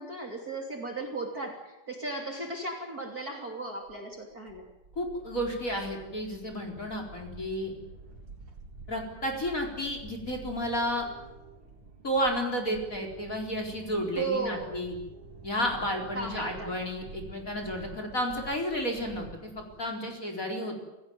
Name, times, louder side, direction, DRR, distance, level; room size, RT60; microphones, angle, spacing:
voice 1, 0.0-4.6 14.1-14.7 16.1-16.8, right 3 dB, 30° right, 1 dB, 3.4 m, -35 dB
sound 1, 3.9-19.9, right 3 dB, 45° right, 4.5 m, -49 dB
voice 2, 5.0-7.7 8.9-11.1 12.0-15.0 15.4-20.8, equal, 25° left, 3 dB, 4.5 m, -32 dB
27.5 x 17.0 x 9.4 m, 1.0 s
omnidirectional pair, 3.4 m